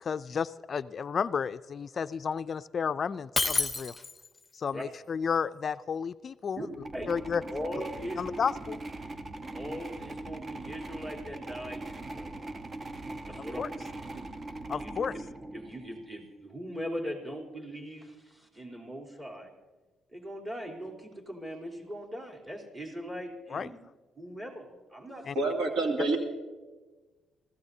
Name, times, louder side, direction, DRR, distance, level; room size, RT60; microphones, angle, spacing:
voice 1, 0.0-4.0 4.6-6.6 7.1-7.4 8.2-8.8 13.6-13.7 14.7-15.1 23.5-23.7 25.3-25.4, left 6 dB, 45° left, 14 dB, 0.3 m, -32 dB
Shatter, 3.4-4.4, left 3 dB, 20° left, 0.7 m, -29 dB
voice 2, 6.6-7.1 7.5-8.4 9.5-12.3 13.3-13.6 14.1-14.3 14.8-14.9 15.5-19.5 20.1-23.8 24.2-25.3, equal, 20° right, -1 dB, 3.4 m, -40 dB
sound 1, 6.7-16.1, right 2 dB, 35° right, 1.0 m, -41 dB
voice 3, 25.3-26.2, right 2 dB, 80° right, 2 dB, 2.4 m, -27 dB
24.5 x 15.5 x 2.7 m, 1.3 s
cardioid pair, 90°, 0 cm